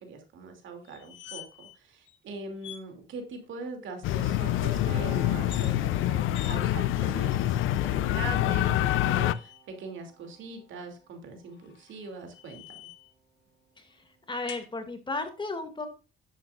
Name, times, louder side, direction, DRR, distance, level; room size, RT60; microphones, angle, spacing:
voice 1, 0.0-12.8, right 3 dB, 75° right, 4 dB, 2.8 m, -42 dB
sound 1, 0.9-1.8 2.1-2.2 2.6-2.9 5.3-5.7 6.3-6.6 7.3-7.9 8.8-9.6 11.5-13.1 14.5-14.7, left 11 dB, 65° left, 1.4 m, -47 dB
sound 2, 4.0-9.3, left 13 dB, 85° left, 0.6 m, -26 dB
Piano, 4.9-11.9 12.2-12.4, right 6 dB, 55° right, 4.4 m, -49 dB
voice 2, 13.8-15.9, left 3 dB, 25° left, 6 dB, 2.3 m, -35 dB
10.5 x 8.6 x 2.5 m, 0.32 s
cardioid pair, 90°, 20 cm